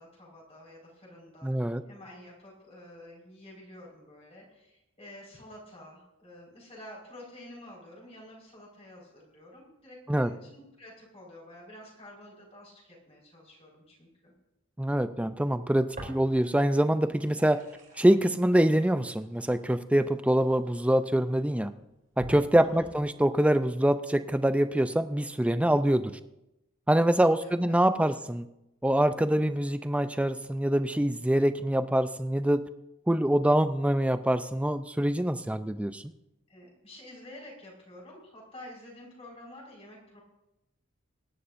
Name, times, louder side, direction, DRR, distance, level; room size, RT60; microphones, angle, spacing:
voice 1, 0.0-14.3 22.6-22.9 27.3-27.8 28.1-28.2 36.5-40.2, left 1 dB, 30° left, -3 dB, 4.7 m, -49 dB
voice 2, 1.4-1.8 10.1-10.3 14.8-17.6 18.0-21.7 22.2-26.1 26.9-28.5 28.8-32.6 33.1-36.1, right 1 dB, 5° right, 11 dB, 0.4 m, -25 dB
sound 1, 15.9-16.7 17.0-21.0 21.6-21.7 22.2-23.1, right 1 dB, 40° right, 4.5 m, -46 dB
23.0 x 11.5 x 2.6 m, 0.91 s
head